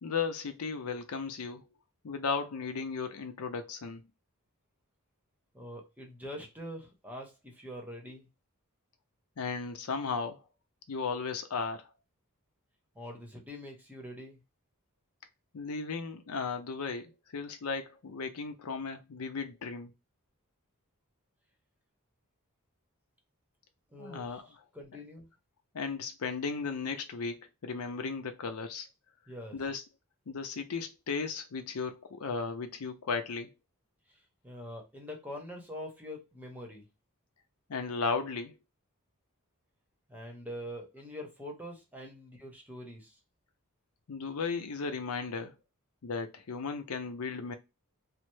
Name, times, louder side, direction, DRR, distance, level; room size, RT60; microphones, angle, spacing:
voice 1, 0.0-1.6 2.0-4.0 9.4-10.4 10.9-11.9 15.5-19.9 24.0-24.4 25.7-28.9 29.5-29.8 30.3-33.5 37.7-38.6 44.1-45.5 46.0-47.5, left 5 dB, 80° left, 0.6 m, -35 dB
voice 2, 5.5-8.3 12.9-14.4 23.9-25.3 29.3-29.6 34.1-36.9 40.1-43.2, equal, 10° right, 0.8 m, -44 dB
3.2 x 2.0 x 3.0 m
head